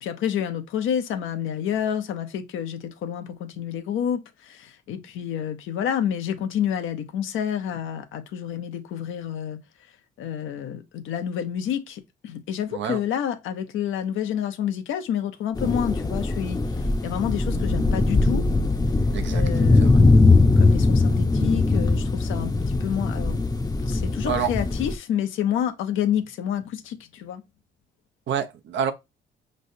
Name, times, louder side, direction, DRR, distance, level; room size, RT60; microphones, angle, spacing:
voice 1, 0.0-9.6 10.2-18.5 19.3-20.2 20.6-23.4 23.9-27.4, left 9 dB, 85° left, 0.8 m, -29 dB
sound 1, 15.6-24.9, left 3 dB, 20° left, 0.7 m, -20 dB
voice 2, 28.3-28.9, right 7 dB, 70° right, 0.7 m, -27 dB
5.4 x 3.2 x 2.6 m
cardioid pair, 90°, 20 cm